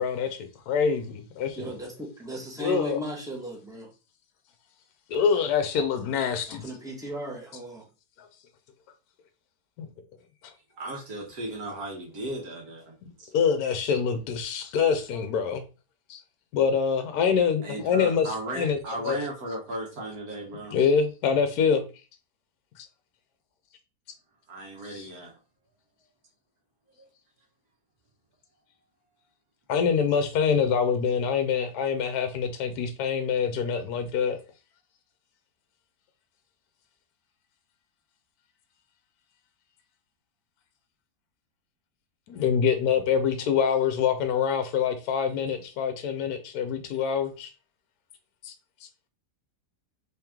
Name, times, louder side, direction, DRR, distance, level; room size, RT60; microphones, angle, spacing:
voice 1, 0.7-1.7 2.6-3.0 5.1-6.7 9.8-9.9 13.3-15.6 16.1-16.2 16.5-18.3 18.6-18.8 19.0-19.2 20.7-21.9 22.8-22.9 29.7-34.4 42.3-47.5 48.4-48.5, left 6 dB, 70° left, 1.0 m, -25 dB
voice 2, 1.5-3.9 6.5-7.8, equal, 5° right, 0.8 m, -36 dB
voice 3, 10.7-13.3 17.6-20.8 24.5-25.3 26.9-27.1, right 1 dB, 65° right, 1.5 m, -36 dB
3.4 x 3.0 x 3.5 m
omnidirectional pair, 1.8 m